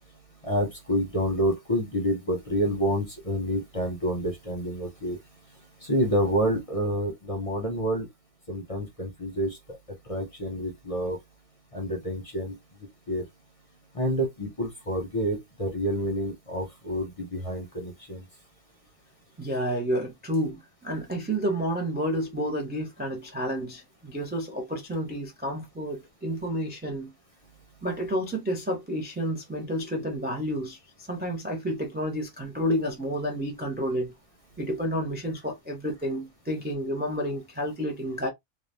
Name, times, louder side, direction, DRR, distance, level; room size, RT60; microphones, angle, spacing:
voice 1, 0.4-5.2 5.8-8.1 8.5-9.6 10.1-11.2 11.7-12.6 13.1-13.2 13.9-18.2, equal, 35° left, 0.7 m, -28 dB
voice 2, 19.4-27.1 27.8-34.1 34.6-38.3, equal, 10° right, 0.5 m, -30 dB
2.6 x 2.3 x 3.3 m
omnidirectional pair, 1.3 m